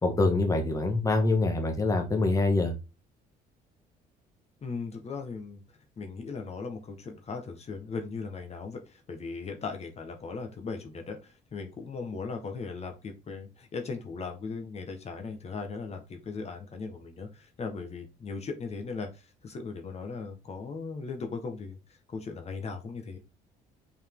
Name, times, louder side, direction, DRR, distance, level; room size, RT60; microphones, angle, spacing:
voice 1, 0.0-2.7, left 2 dB, 20° left, 3 dB, 1.5 m, -25 dB
voice 2, 4.6-5.6 6.0-21.8 22.1-23.2, left 4 dB, 40° left, 5 dB, 1.6 m, -38 dB
5.4 x 4.7 x 3.8 m, 0.28 s
cardioid pair, 110°, 17 cm